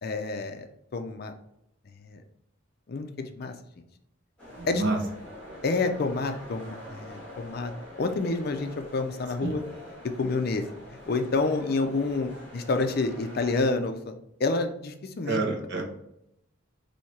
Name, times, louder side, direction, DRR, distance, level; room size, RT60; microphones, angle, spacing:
voice 1, 0.0-0.7 0.9-1.3 2.0-2.2 2.9-3.5 4.7-4.8 5.6-9.6 10.1-10.6 11.1-14.1 14.4-15.4, left 3 dB, 50° left, 7 dB, 0.4 m, -28 dB
sound 1, 4.4-13.6, left 1 dB, 5° left, 1.7 m, -45 dB
voice 2, 4.6-5.0 9.4-9.6 15.3-15.8, right 3 dB, 55° right, 1 dB, 0.9 m, -28 dB
4.2 x 2.8 x 4.5 m, 0.79 s
head